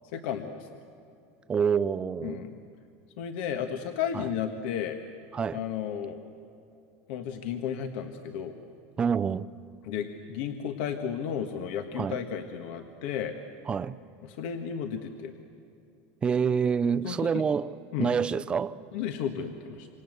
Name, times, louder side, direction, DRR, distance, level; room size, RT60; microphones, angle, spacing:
voice 1, 0.1-0.7 2.2-2.6 3.2-5.0 5.5-6.2 7.1-8.6 9.8-13.4 14.2-15.3 17.0-17.4 17.9-18.1 18.9-19.9, left 8 dB, 65° left, 1.6 m, -33 dB
voice 2, 1.5-2.5 4.1-4.2 5.3-5.6 9.0-9.5 12.0-12.2 13.7-13.9 16.2-18.8, right 6 dB, 15° right, 0.5 m, -27 dB
27.5 x 26.0 x 8.0 m
cardioid pair, 165°, 6 cm